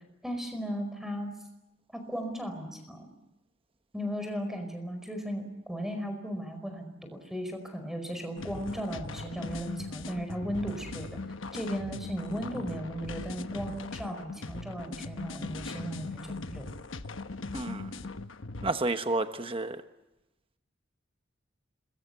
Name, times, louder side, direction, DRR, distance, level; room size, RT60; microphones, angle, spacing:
voice 1, 0.2-1.4 1.9-3.1 3.9-11.2 11.5-16.7, equal, ahead, 6 dB, 4.9 m, -36 dB
sound 1, 8.4-18.7, left 3 dB, 75° left, 1.1 m, -40 dB
voice 2, 17.5-17.9 18.6-19.8, right 2 dB, 30° right, 8 dB, 1.1 m, -30 dB
27.5 x 21.5 x 8.3 m, 0.95 s
head